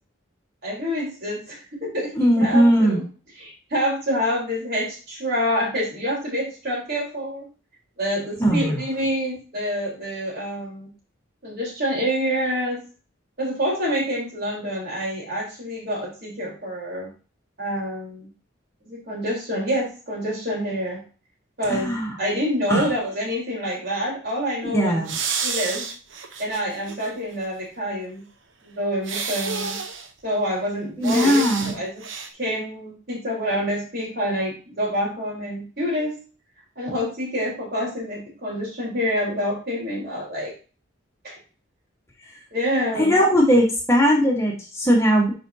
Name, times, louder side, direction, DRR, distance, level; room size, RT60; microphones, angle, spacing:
voice 1, 0.6-3.0 3.4-7.5 8.0-10.9 11.4-12.8 13.4-17.1 17.6-18.3 18.8-21.0 21.6-25.0 25.4-25.9 26.4-28.2 28.6-29.8 30.2-32.0 32.4-36.1 36.8-40.5 41.2-41.3 42.5-43.2, equal, 55° right, -3 dB, 4.0 m, -27 dB
voice 2, 2.1-3.0 8.4-8.8 21.7-22.2 22.7-22.9 24.7-25.1 31.0-31.7 42.9-45.3, equal, 15° left, -1 dB, 1.5 m, -19 dB
sound 1, 25.1-27.1 27.5-27.6 29.0-30.1 31.0-31.8 32.0-32.3, right 5 dB, 75° right, 1.0 m, -30 dB
10.5 x 5.2 x 2.8 m, 0.36 s
head